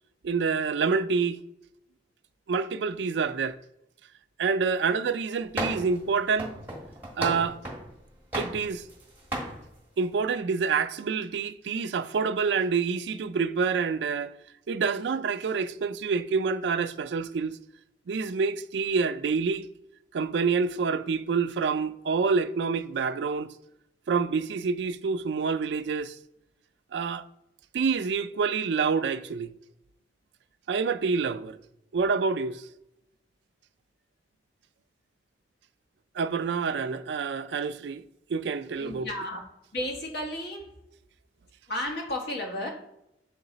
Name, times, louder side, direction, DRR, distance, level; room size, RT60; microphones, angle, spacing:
voice 1, 0.2-1.4 2.5-3.6 4.4-6.5 7.2-7.6 8.3-8.8 10.0-14.3 14.7-17.5 18.1-19.6 20.1-23.5 24.1-26.2 26.9-27.2 27.7-29.5 30.7-31.6 31.9-32.7 36.2-38.0 38.3-39.1, right 5 dB, 70° right, 0.4 m, -27 dB
sound 1, 5.6-6.0 6.4-7.9 8.3-9.0 9.3-9.6, right 1 dB, 10° right, 1.5 m, -33 dB
voice 2, 38.7-39.4 39.7-40.7 41.7-42.7, left 1 dB, 65° left, 1.5 m, -33 dB
7.5 x 3.9 x 4.0 m
head